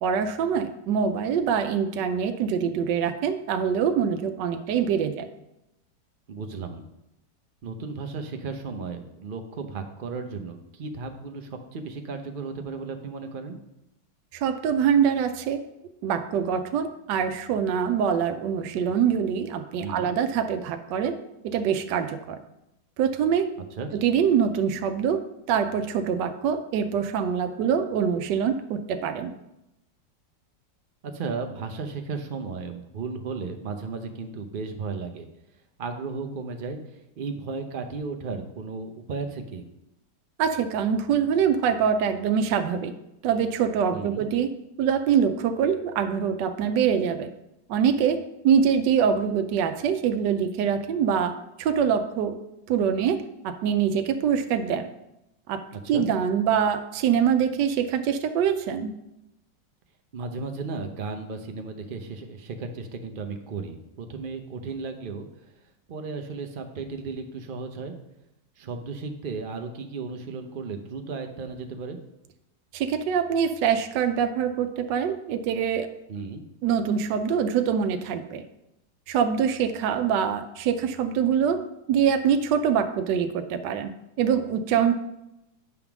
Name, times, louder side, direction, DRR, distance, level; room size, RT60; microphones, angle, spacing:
voice 1, 0.0-5.3 14.3-15.6 16.0-21.2 21.4-22.4 23.0-23.5 23.9-25.2 25.5-29.3 40.4-42.9 43.2-44.5 44.8-47.3 47.7-51.3 51.6-52.4 52.7-54.9 55.5-55.6 55.9-58.9 72.7-75.9 76.6-78.4 79.1-81.6 81.9-83.9 84.2-84.9, right 7 dB, 80° right, 7 dB, 1.2 m, -24 dB
voice 2, 6.3-6.8 7.6-13.6 19.8-20.1 23.8-23.9 31.0-35.3 35.8-36.8 37.2-39.6 43.9-44.2 55.7-56.1 60.1-65.3 65.9-68.0 68.6-72.0 76.1-76.4, right 4 dB, 60° right, 5 dB, 0.5 m, -34 dB
9.6 x 3.6 x 5.9 m, 0.88 s
omnidirectional pair, 1.9 m